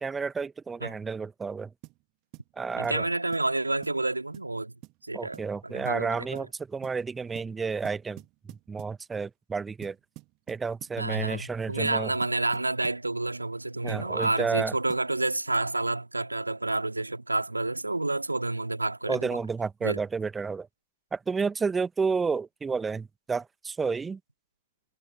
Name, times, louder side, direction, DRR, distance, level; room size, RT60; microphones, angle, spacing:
voice 1, 0.0-1.7 2.6-3.0 5.1-8.2 8.5-10.0 10.5-12.1 13.8-14.7 19.1-20.7 21.1-24.2, right 5 dB, 15° right, 1.5 m, -31 dB
sound 1, 1.8-2.0 2.3-2.5 2.8-3.0 3.3-3.5 3.8-4.0 4.3-4.5 4.8-5.0 5.3-5.5 5.8-6.1 6.3-6.5 6.8-7.0 7.4-7.6 7.8-9.0 9.8-11.0 11.8-13.0 13.9-15.1, right 25 dB, 40° right, 2.6 m, -48 dB
voice 2, 2.8-4.7 5.0-6.5 11.0-19.4 19.8-20.0, right 2 dB, 85° right, 2.7 m, -29 dB
figure-of-eight pair, 90°, 0 cm